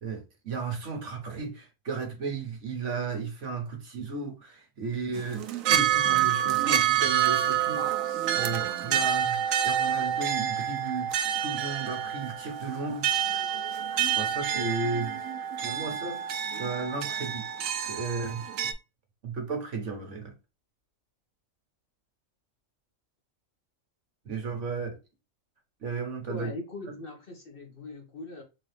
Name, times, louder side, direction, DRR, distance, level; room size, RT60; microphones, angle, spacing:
voice 1, 0.0-13.3 14.1-15.2 15.6-17.4 17.8-18.4 19.2-20.3 24.2-25.0 25.8-26.5 26.9-27.0, right 4 dB, 65° right, 1.5 m, -34 dB
sound 1, 5.2-18.7, right 9 dB, 85° right, 1.0 m, -28 dB
voice 2, 26.3-28.4, left 2 dB, 45° left, 1.3 m, -40 dB
3.9 x 3.0 x 3.2 m
omnidirectional pair, 1.4 m